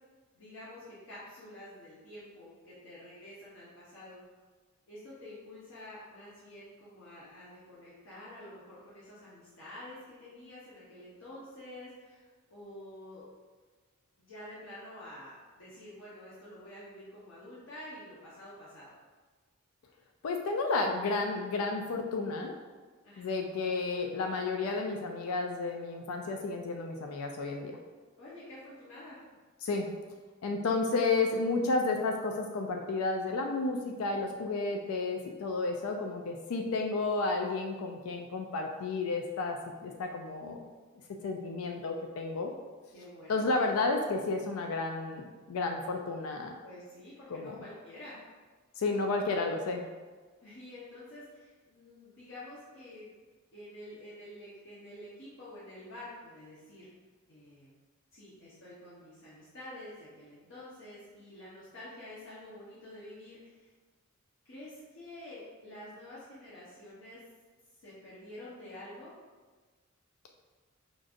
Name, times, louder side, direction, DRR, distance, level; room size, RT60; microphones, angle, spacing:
voice 1, 0.3-4.2 4.9-13.2 14.2-18.9 23.0-23.4 28.2-29.2 42.9-43.6 46.6-48.2 50.4-53.1 53.5-56.9 57.3-57.7 58.1-63.7 64.4-67.2 67.8-69.1, left 1 dB, 65° left, -9 dB, 0.9 m, -48 dB
voice 2, 20.2-22.6 23.2-27.7 29.6-29.9 30.4-40.6 41.2-42.5 43.3-46.5 47.3-47.6 48.8-49.8, left 3 dB, 80° left, 3 dB, 0.4 m, -32 dB
5.2 x 2.5 x 2.4 m, 1.4 s
head